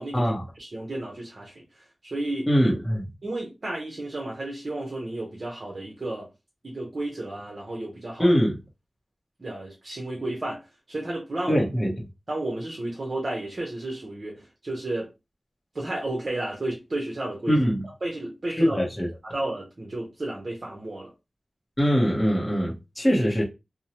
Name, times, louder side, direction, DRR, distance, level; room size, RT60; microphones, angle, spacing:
voice 1, 0.0-0.3 0.6-2.5 3.2-6.3 6.6-8.4 9.4-11.6 12.3-15.1 15.7-17.6 18.0-18.8 19.2-21.1, right 2 dB, 45° right, 0.7 m, -32 dB
voice 2, 2.5-3.1 8.2-8.5 11.5-11.9 17.5-17.8 18.5-19.1 21.8-23.4, equal, 10° left, 0.9 m, -22 dB
2.7 x 2.0 x 2.9 m
wide cardioid pair, 100°, 0 cm